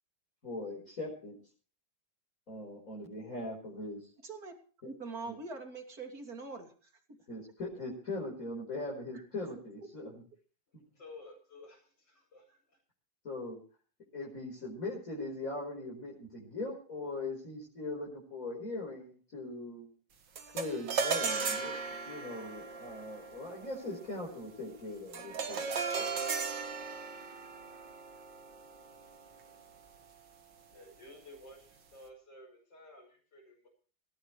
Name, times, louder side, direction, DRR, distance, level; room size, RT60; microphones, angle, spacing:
voice 1, 0.4-1.4 2.5-4.1 4.8-4.9 7.3-10.2 13.2-13.6 14.1-19.9 20.5-21.8 22.0-25.7 26.0-26.1, left 2 dB, 45° left, -2 dB, 5.4 m, -40 dB
voice 2, 4.2-4.5 4.8-6.7, right 3 dB, 55° right, 4 dB, 3.4 m, -43 dB
voice 3, 10.9-12.8 30.7-33.7, left 2 dB, 75° left, -2 dB, 6.6 m, -53 dB
sound 1, 20.4-29.8, right 5 dB, 80° right, 2.4 m, -37 dB
19.5 x 17.0 x 3.3 m, 0.41 s
omnidirectional pair, 1.9 m